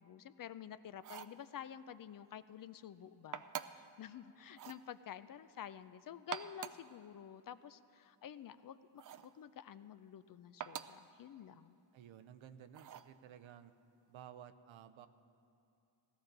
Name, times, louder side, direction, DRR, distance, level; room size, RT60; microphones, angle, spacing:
voice 1, 0.0-3.4 3.7-11.8, left 9 dB, 50° left, 14 dB, 0.4 m, -50 dB
sound 1, 0.9-1.4 3.3-3.9 4.5-4.8 6.1-6.9 9.0-9.3 10.6-11.0 12.7-13.1, right 9 dB, 45° right, 0.5 m, -46 dB
voice 2, 11.9-13.7 14.1-15.1, right 9 dB, 90° right, 10 dB, 0.7 m, -55 dB
17.0 x 13.0 x 3.9 m, 2.6 s
cardioid pair, 90°, 46 cm